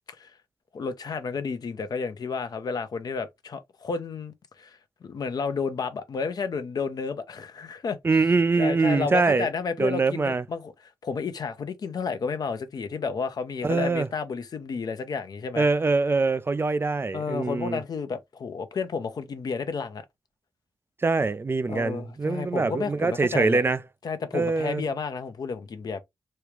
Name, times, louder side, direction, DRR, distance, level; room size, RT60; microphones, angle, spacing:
voice 1, 0.7-8.0 8.6-10.7 11.0-15.7 17.1-20.0 21.7-23.6 24.0-26.0, left 5 dB, 60° left, 0.7 m, -31 dB
voice 2, 8.0-9.5 9.8-10.4 13.6-14.1 15.6-17.8 21.0-23.8 24.3-24.8, right 3 dB, 30° right, 0.4 m, -24 dB
3.2 x 2.3 x 3.2 m
supercardioid pair, 40°, 8 cm